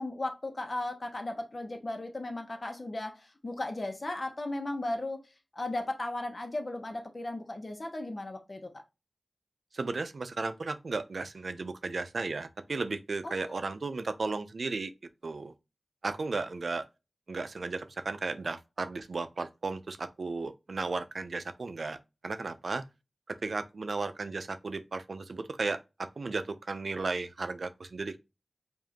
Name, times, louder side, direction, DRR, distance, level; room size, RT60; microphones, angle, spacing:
voice 1, 0.0-5.2 5.5-8.7 13.2-13.6, left 2 dB, 50° left, 0.9 m, -36 dB
voice 2, 9.7-14.9 15.2-15.5 16.0-16.8 17.3-22.0 22.2-22.8 23.3-28.2, right 3 dB, 80° right, 0.4 m, -35 dB
4.9 x 2.6 x 2.9 m
wide cardioid pair, 45°, 0 cm